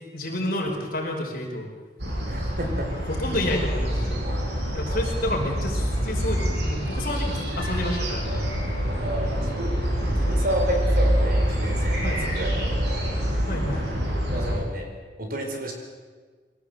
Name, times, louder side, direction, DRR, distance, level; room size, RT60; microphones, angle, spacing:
voice 1, 0.1-1.7 3.1-4.3 4.7-8.3 12.0-12.2 13.5-13.9, left 1 dB, 55° left, 0 dB, 5.1 m, -29 dB
sound 1, 2.0-14.5, equal, 75° right, 6.9 m, -26 dB
voice 2, 2.2-2.9 9.0-12.9 14.3-14.9 15.2-15.7, right 1 dB, 55° right, 3 dB, 4.7 m, -31 dB
23.5 x 17.5 x 8.1 m, 1.5 s
head